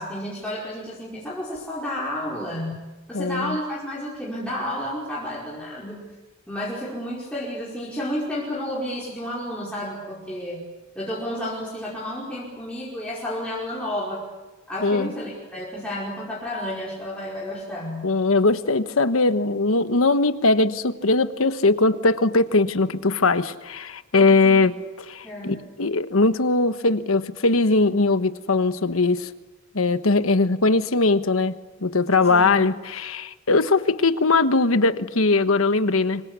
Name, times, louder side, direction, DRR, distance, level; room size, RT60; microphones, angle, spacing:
voice 1, 0.0-2.8 3.1-6.0 6.5-10.6 11.0-14.2 14.7-18.0 24.2-24.6 25.2-25.5 32.3-32.6, left 1 dB, 5° left, -7 dB, 5.2 m, -31 dB
voice 2, 3.1-3.6 14.8-15.1 18.0-24.7 25.0-29.3 29.7-31.5 31.8-36.2, left 3 dB, 90° left, 11 dB, 1.3 m, -20 dB
26.0 x 24.5 x 8.3 m, 1.2 s
head